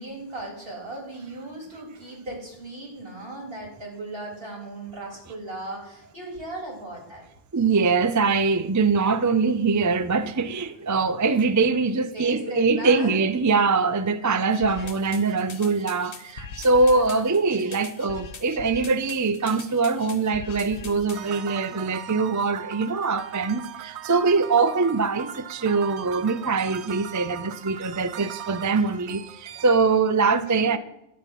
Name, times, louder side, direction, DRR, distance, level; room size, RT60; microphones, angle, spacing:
voice 1, 0.0-7.2 12.0-13.2 14.8-14.9 16.9-17.3 30.2-30.7, right 2 dB, 50° right, 3.9 m, -37 dB
voice 2, 7.5-30.8, right 4 dB, 30° right, 0.3 m, -23 dB
sound 1, 14.5-21.4, left 4 dB, 65° left, 1.4 m, -42 dB
sound 2, 21.1-30.1, right 9 dB, 70° right, 1.0 m, -39 dB
13.5 x 5.2 x 9.2 m
omnidirectional pair, 1.2 m